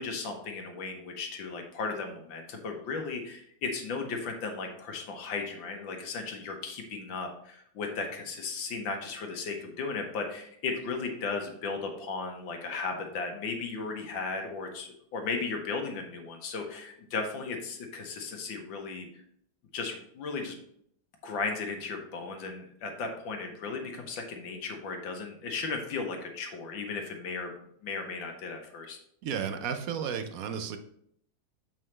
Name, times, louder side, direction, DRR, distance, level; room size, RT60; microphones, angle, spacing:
voice 1, 0.0-19.2 19.7-20.6 21.2-27.5 27.8-29.0, left 4 dB, 80° left, 3 dB, 1.8 m, -36 dB
voice 2, 29.2-30.8, right 7 dB, 70° right, 7 dB, 0.9 m, -33 dB
7.4 x 5.4 x 3.2 m, 0.69 s
omnidirectional pair, 2.0 m